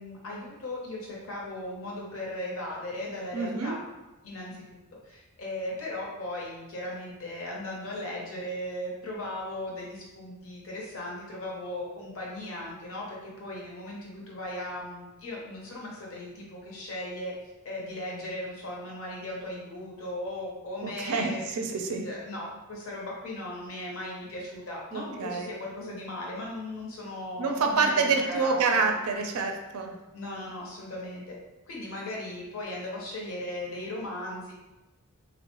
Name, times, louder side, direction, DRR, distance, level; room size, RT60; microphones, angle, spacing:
voice 1, 0.0-3.8 4.2-17.3 17.6-21.6 22.0-28.9 30.1-31.4 31.7-34.5, left 1 dB, 60° left, -3 dB, 0.7 m, -37 dB
voice 2, 3.3-3.7 20.8-22.1 24.9-25.5 27.4-29.9, right 4 dB, 75° right, 4 dB, 0.4 m, -27 dB
3.7 x 2.0 x 2.9 m, 1.1 s
head